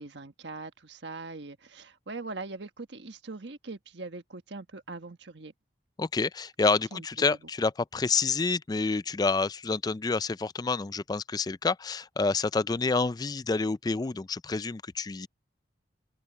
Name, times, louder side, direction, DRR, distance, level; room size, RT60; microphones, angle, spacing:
voice 1, 0.0-5.5 6.9-7.3, right 3 dB, 70° right, 1.4 m, -41 dB
voice 2, 6.0-15.3, left 4 dB, 20° left, 0.3 m, -28 dB
open air
head